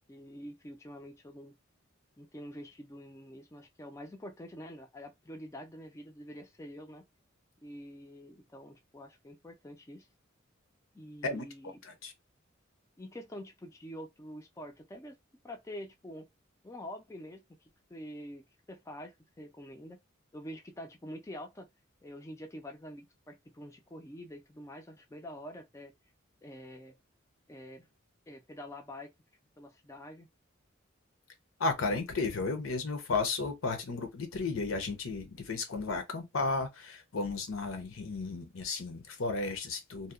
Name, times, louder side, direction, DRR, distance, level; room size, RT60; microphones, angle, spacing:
voice 1, 0.1-1.5 2.2-7.0 7.6-10.1 10.9-11.8 13.0-15.2 15.4-16.3 16.6-20.0 20.3-21.7 22.0-25.9 26.4-27.0 27.5-27.9 28.3-29.1 29.6-30.3, equal, 15° left, 0.3 m, -46 dB
voice 2, 31.6-40.1, left 3 dB, 85° left, 0.7 m, -34 dB
2.7 x 2.1 x 2.4 m
head